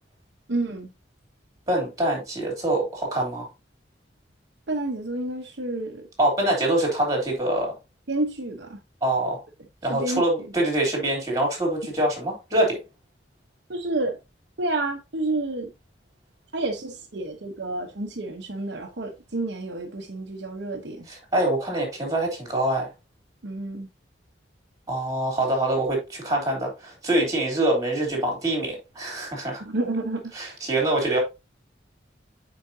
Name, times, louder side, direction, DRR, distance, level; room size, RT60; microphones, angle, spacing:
voice 1, 0.5-0.9 4.7-6.1 8.1-8.8 9.9-10.2 13.7-14.2 14.6-15.7 16.5-21.1 23.4-23.9 29.6-30.3, right 2 dB, 70° right, 1.0 m, -29 dB
voice 2, 1.7-3.5 6.2-7.7 9.0-9.4 9.8-12.8 21.1-22.9 24.9-29.6 30.3-31.2, right 1 dB, 20° right, 3.4 m, -25 dB
8.4 x 5.1 x 2.8 m
head